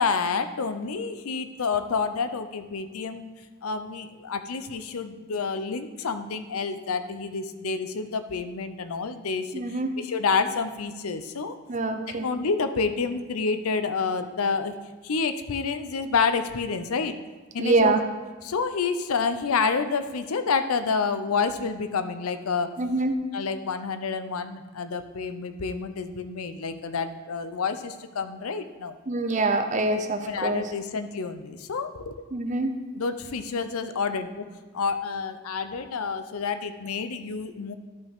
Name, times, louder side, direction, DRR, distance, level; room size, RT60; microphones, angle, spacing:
voice 1, 0.0-3.3 3.6-9.5 10.0-11.6 12.1-14.7 15.0-17.1 17.5-18.0 18.4-22.7 23.3-29.0 29.9-32.2 33.0-34.5 34.7-37.7, left 5 dB, 85° left, 10 dB, 0.6 m, -28 dB
voice 2, 9.5-9.9 11.7-12.3 17.6-18.0 22.8-23.1 29.1-30.6 32.3-32.7, right 3 dB, 35° right, 7 dB, 0.6 m, -25 dB
11.5 x 5.6 x 3.6 m, 1.2 s
head